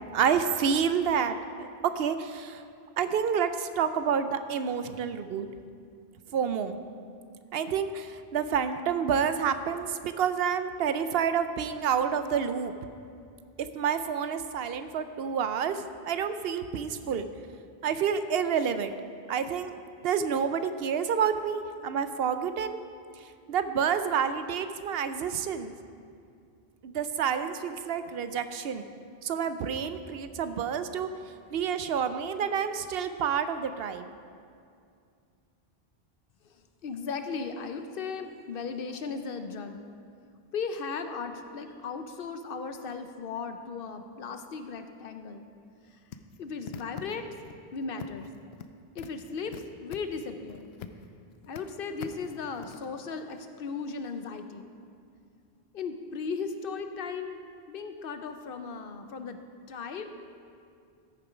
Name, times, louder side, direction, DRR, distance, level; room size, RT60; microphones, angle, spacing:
voice 1, 0.1-2.6 3.0-5.5 6.3-6.8 7.5-12.7 13.7-17.3 17.8-18.9 19.3-19.7 20.0-22.8 23.2-25.7 26.8-28.9 29.2-31.1 31.5-34.1, right 7 dB, 75° right, 10 dB, 0.8 m, -29 dB
voice 2, 36.5-39.8 40.5-45.5 45.9-46.0 46.4-47.3 47.7-48.3 48.9-50.7 51.5-54.7 55.7-57.4 57.7-59.4 59.7-60.1, left 5 dB, 65° left, 8 dB, 0.9 m, -36 dB
sound 1, 46.1-47.5 48.0-48.7 49.0-51.1 51.3-51.6 52.0-52.9, left 8 dB, 90° left, 0.8 m, -43 dB
14.0 x 6.9 x 5.0 m, 2.3 s
omnidirectional pair, 1.0 m